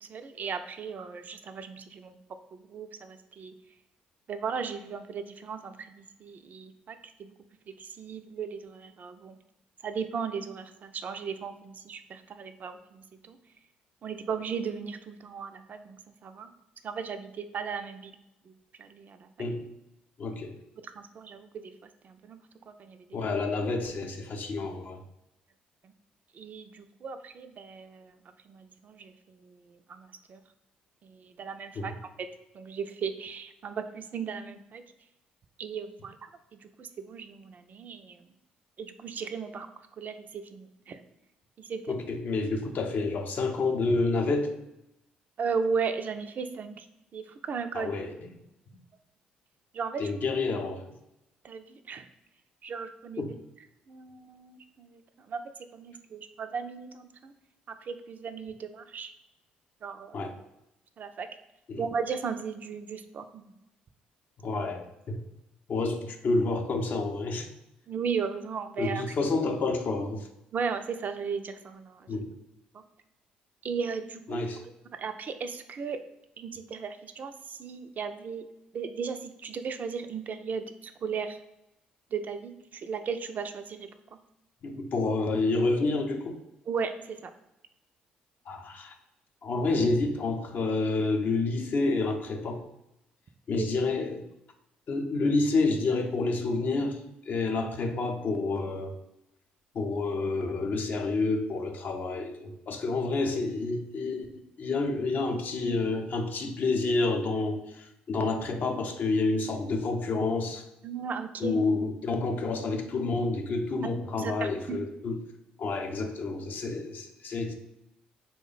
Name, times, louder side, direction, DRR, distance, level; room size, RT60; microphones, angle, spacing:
voice 1, 0.0-2.2 2.5-3.5 4.3-7.3 7.8-9.4 9.8-13.4 14.0-16.5 16.8-18.2 18.8-19.3 20.8-21.7 22.0-22.4 22.7-23.2 25.8-25.9 26.3-28.1 28.5-29.6 29.9-30.4 31.0-32.0 32.5-34.8 35.6-36.3 36.6-38.2 38.8-39.7 40.0-41.0 41.6-41.9 45.4-46.9 47.1-47.9 49.7-50.1 51.4-52.1 52.6-53.2 53.9-55.0 55.3-55.4 55.7-57.3 57.9-59.1 59.8-60.2 61.0-61.3 61.8-63.5 67.9-69.0 70.5-72.1 72.7-72.8 73.6-74.4 74.9-76.0 76.4-78.5 78.7-81.4 82.1-83.9 86.7-87.3 93.6-93.7 110.8-111.6 114.2-114.8, right 6 dB, 50° right, 8 dB, 0.3 m, -36 dB
voice 2, 20.2-20.6 23.1-25.0 31.8-32.0 41.9-44.5 47.7-48.3 50.0-50.8 53.2-53.3 60.1-60.3 61.7-61.8 64.4-65.2 65.7-67.5 68.8-70.3 72.1-72.3 74.3-74.6 84.6-86.4 88.5-88.9 89.4-92.6 93.5-94.2 94.9-97.0 97.3-98.9 99.7-104.3 104.6-110.6 111.4-115.2 115.6-117.6, left 3 dB, 55° left, 5 dB, 0.5 m, -29 dB
3.0 x 2.1 x 3.9 m, 0.87 s
hypercardioid pair, 55°, 4 cm